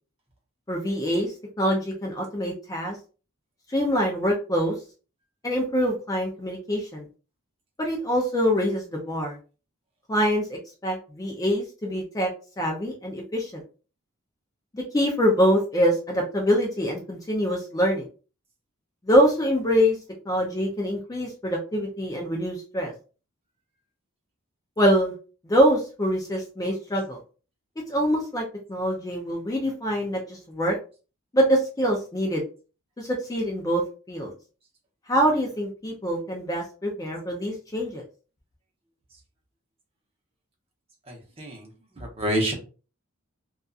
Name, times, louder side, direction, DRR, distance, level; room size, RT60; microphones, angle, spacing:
voice 1, 0.7-3.0 3.7-4.7 5.4-7.0 7.8-9.4 10.1-12.3 12.6-13.6 14.7-18.1 19.0-20.0 20.3-22.9 24.8-25.1 25.4-27.2 27.9-30.8 31.3-32.4 33.0-33.8 34.1-34.3 35.1-38.0, equal, 15° left, 0 dB, 0.4 m, -24 dB
voice 2, 41.1-41.7 42.2-42.5, right 1 dB, 25° right, 0 dB, 0.7 m, -27 dB
2.6 x 2.3 x 2.3 m, 0.36 s
head